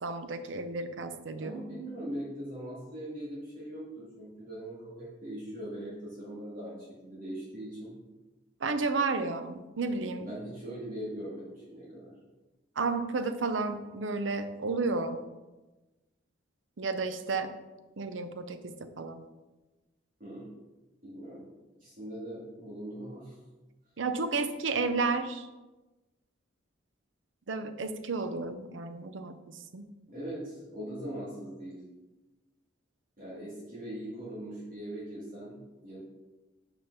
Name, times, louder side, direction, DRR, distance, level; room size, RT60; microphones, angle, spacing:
voice 1, 0.0-1.5 8.6-10.3 12.8-15.2 16.8-17.5 18.0-19.3 24.0-25.5 27.5-29.8, right 3 dB, 80° right, 9 dB, 0.6 m, -32 dB
voice 2, 1.3-7.9 10.2-12.1 20.2-20.5 21.0-21.5 21.8-23.4 30.1-31.8 33.2-36.0, right 1 dB, 45° right, -7 dB, 2.3 m, -41 dB
5.6 x 5.2 x 5.5 m, 1.1 s
head